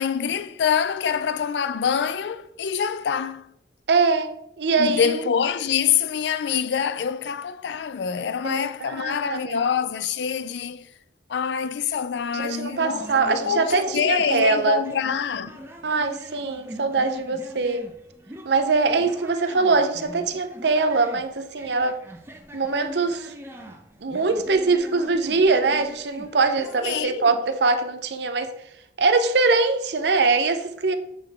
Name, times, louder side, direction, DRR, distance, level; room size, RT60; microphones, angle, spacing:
voice 1, 0.0-3.5 4.8-10.9 11.3-15.6 26.8-27.4, left 7 dB, 80° left, 0.4 m, -25 dB
voice 2, 3.9-5.2 8.4-9.6 12.3-14.8 15.8-17.9 18.4-22.0 22.5-23.3 24.0-28.5 29.0-30.9, right 4 dB, 75° right, 0.6 m, -22 dB
sound 1, 12.7-27.0, equal, 15° right, 0.6 m, -42 dB
8.9 x 3.9 x 3.5 m
head